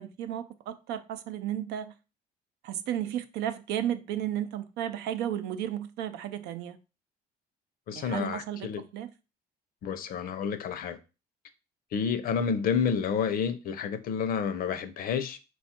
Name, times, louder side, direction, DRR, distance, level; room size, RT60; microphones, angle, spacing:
voice 1, 0.0-1.9 2.6-6.8 7.9-9.1, right 11 dB, 85° right, 0.5 m, -33 dB
voice 2, 7.9-8.8 9.8-11.0 11.9-15.4, left 6 dB, 60° left, 0.6 m, -29 dB
4.3 x 2.4 x 4.3 m
cardioid pair, 110°, 17 cm